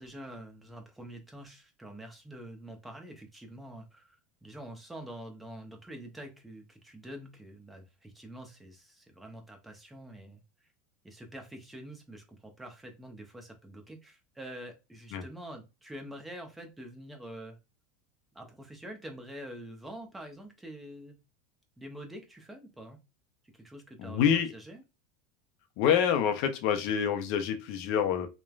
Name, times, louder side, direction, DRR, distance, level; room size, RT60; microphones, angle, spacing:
voice 1, 0.0-10.4 11.0-17.6 18.3-21.2 21.8-23.0 23.5-24.8, right 1 dB, 10° right, 4 dB, 0.6 m, -46 dB
voice 2, 24.0-24.5 25.8-28.3, left 8 dB, 60° left, 7 dB, 0.5 m, -27 dB
3.1 x 2.1 x 2.3 m, 0.27 s
supercardioid pair, 125°, 0 cm